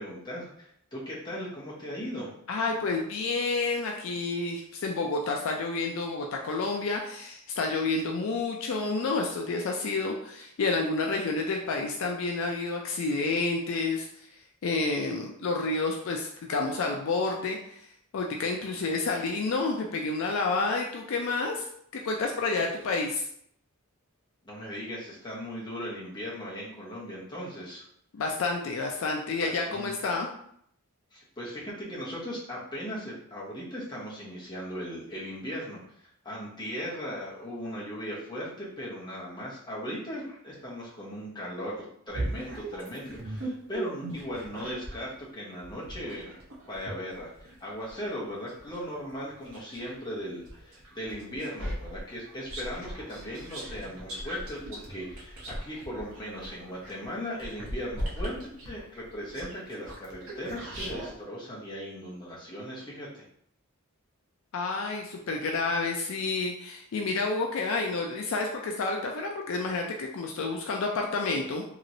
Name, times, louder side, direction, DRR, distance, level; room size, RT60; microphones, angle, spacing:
voice 1, 0.0-2.3 24.4-27.9 29.4-29.9 31.1-46.4 46.7-58.4 58.7-63.2, equal, 20° left, -6 dB, 0.9 m, -38 dB
voice 2, 2.5-14.1 14.6-17.8 18.1-21.7 21.9-23.2 28.1-30.3 64.5-71.6, left 3 dB, 60° left, 1 dB, 0.3 m, -29 dB
sound 1, 42.1-45.1 45.6-50.0 50.4-61.1, right 1 dB, 65° right, 0.8 m, -38 dB
2.9 x 2.9 x 2.6 m, 0.70 s
head